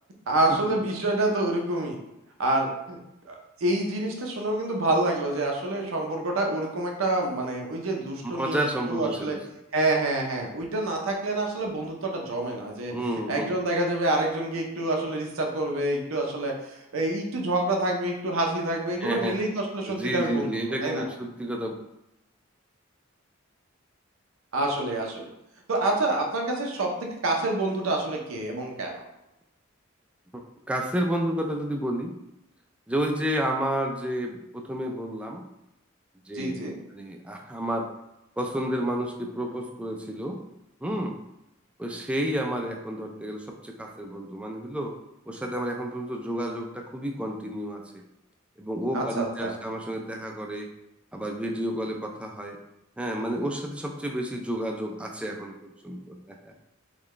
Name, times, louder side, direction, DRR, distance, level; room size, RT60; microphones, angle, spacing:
voice 1, 0.3-2.0 2.4-3.0 3.3-9.3 9.7-12.9 13.3-16.5 16.9-21.0 24.5-25.3 25.7-29.0 36.3-36.8 48.9-49.5, right 2 dB, 90° right, 1 dB, 0.7 m, -27 dB
voice 2, 8.3-9.4 12.9-13.5 19.0-19.4 19.9-21.7 30.3-32.2 32.9-35.4 36.3-36.5 36.9-37.9 38.4-40.4 40.8-41.2 41.8-44.9 45.3-48.0 48.6-50.7 51.1-52.6 53.0-56.5, right 1 dB, 5° right, 1 dB, 0.3 m, -30 dB
3.9 x 2.3 x 3.1 m, 0.88 s
head